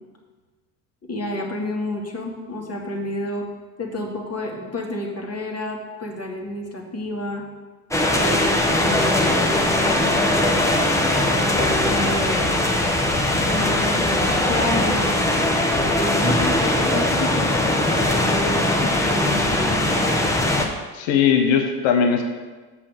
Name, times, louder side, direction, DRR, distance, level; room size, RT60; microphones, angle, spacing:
voice 1, 1.0-3.5 3.8-7.4 8.2-10.1 11.4-12.6 13.5-15.2 15.9-17.5 18.0-19.8, left 1 dB, 30° left, -1 dB, 2.2 m, -29 dB
sound 1, 7.9-20.7, left 1 dB, 5° left, 1.4 m, -20 dB
voice 2, 20.9-22.2, left 7 dB, 70° left, 4 dB, 1.3 m, -19 dB
7.2 x 5.7 x 6.7 m, 1.3 s
hypercardioid pair, 65°, 47 cm